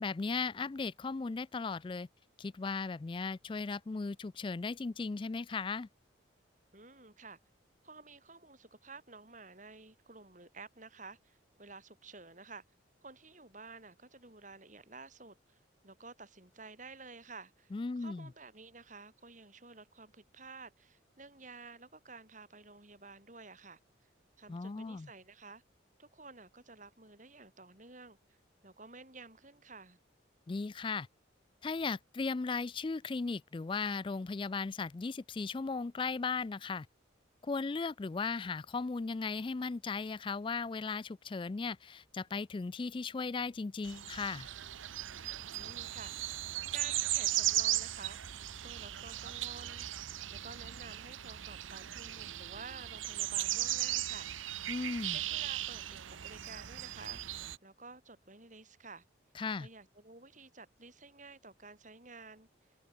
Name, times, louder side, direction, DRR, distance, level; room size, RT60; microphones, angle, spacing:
voice 1, 0.0-2.1 2.4-5.9 17.7-18.3 24.5-25.1 30.5-31.1 31.6-36.9 37.4-44.5 54.7-55.2 59.4-59.7, left 4 dB, 25° left, 0.3 m, -37 dB
voice 2, 6.7-7.4 7.8-12.6 13.0-23.8 24.4-25.6 26.0-28.4 28.6-30.0 45.5-46.1 46.7-48.2 48.5-49.9 50.3-54.6 55.0-57.2 57.6-59.0 59.5-62.5, right 3 dB, 40° right, 6.5 m, -52 dB
sound 1, 43.8-57.6, right 14 dB, 85° right, 0.8 m, -37 dB
head